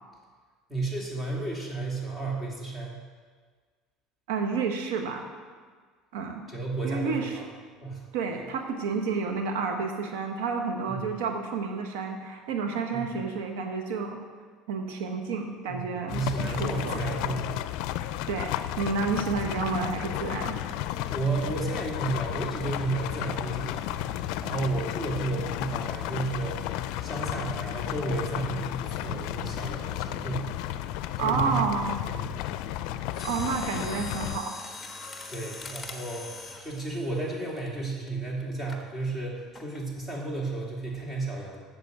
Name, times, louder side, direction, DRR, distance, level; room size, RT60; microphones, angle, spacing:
voice 1, 0.7-3.0 6.5-7.4 7.8-8.0 10.9-11.1 12.9-13.2 15.7-17.6 21.1-23.9 24.4-26.6 27.0-30.5 31.2-31.7 32.1-32.3 35.3-41.6, right 3 dB, 15° right, -3 dB, 2.9 m, -32 dB
voice 2, 4.3-5.3 6.1-6.4 6.8-7.4 8.1-14.2 14.7-17.0 18.3-20.6 31.2-32.0 33.2-34.5, right 5 dB, 90° right, 4 dB, 1.1 m, -30 dB
sound 1, 16.1-34.4, left 12 dB, 70° left, 0.4 m, -33 dB
Mechanisms, 33.1-38.1 38.7-38.9 39.5-39.9 40.2-40.3, left 3 dB, 15° left, 1.2 m, -42 dB
8.0 x 7.2 x 8.1 m, 1.6 s
supercardioid pair, 125°, 0 cm